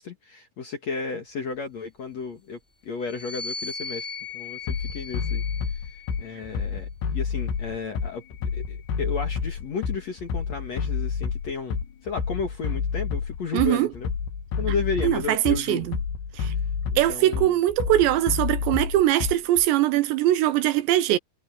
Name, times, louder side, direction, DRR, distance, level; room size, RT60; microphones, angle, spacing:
voice 1, 0.0-4.1 4.3-5.4 6.2-14.1 14.6-15.9 16.9-17.5, left 5 dB, 50° left, 2.2 m, -33 dB
sound 1, 3.0-6.6 7.4-9.0, left 4 dB, 15° left, 2.0 m, -39 dB
Bass drum, 4.7-19.7, left 6 dB, 70° left, 4.2 m, -29 dB
voice 2, 13.5-13.9 15.0-16.0 16.4-16.5 17.0-21.2, right 14 dB, 80° right, 2.8 m, -22 dB
omnidirectional pair, 5.4 m